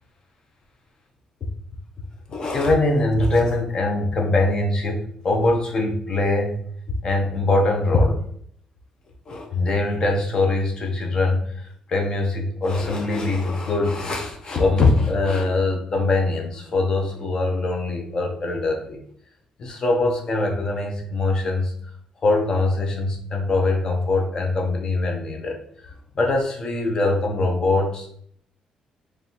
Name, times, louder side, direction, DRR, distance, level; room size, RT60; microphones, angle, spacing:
voice 1, 2.3-6.7 7.0-8.2 9.3-19.0 19.6-21.7 22.2-25.6 25.8-28.2, left 2 dB, 35° left, 2 dB, 0.7 m, -22 dB
3.9 x 3.1 x 2.9 m, 0.63 s
cardioid pair, 175°, 2 cm